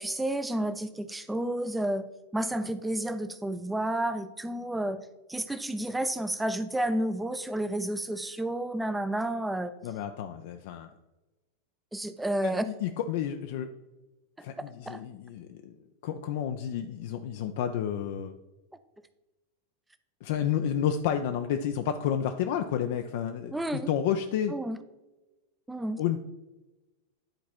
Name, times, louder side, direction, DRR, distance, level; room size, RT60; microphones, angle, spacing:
voice 1, 0.0-2.1 2.3-5.0 5.3-9.7 11.9-12.7 14.9-15.0 23.5-23.9 24.5-24.8 25.7-26.0, right 1 dB, 5° right, 12 dB, 0.6 m, -31 dB
voice 2, 9.8-10.9 12.4-13.7 14.4-15.7 16.0-18.3 20.2-24.5 26.0-26.2, left 9 dB, 50° left, 7 dB, 0.5 m, -30 dB
10.5 x 4.1 x 4.4 m, 1.1 s
figure-of-eight pair, 90°, 0 cm